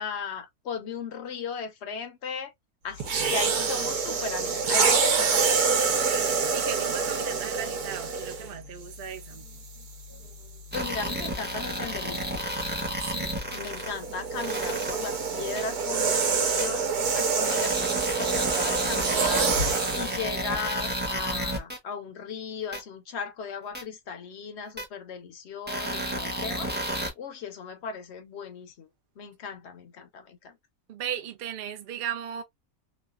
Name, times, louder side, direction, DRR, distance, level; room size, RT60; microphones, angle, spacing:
voice 1, 0.0-2.5 2.8-5.6 10.7-12.3 13.5-19.5 19.9-26.7 27.2-28.9 29.2-30.6, left 6 dB, 55° left, 0.8 m, -37 dB
sound 1, 3.0-8.5 9.3-9.6 13.5-20.2, right 5 dB, 75° right, 1.4 m, -26 dB
voice 2, 6.5-9.5 13.0-13.3 30.9-32.4, right 9 dB, 60° right, 0.6 m, -36 dB
sound 2, 10.7-13.9 14.4-14.9 15.6-15.7 16.6-16.7 17.5-21.8 22.7-22.8 23.7-23.8 24.8-24.9 25.7-27.1, equal, 10° right, 0.5 m, -31 dB
3.1 x 2.3 x 2.3 m
omnidirectional pair, 1.6 m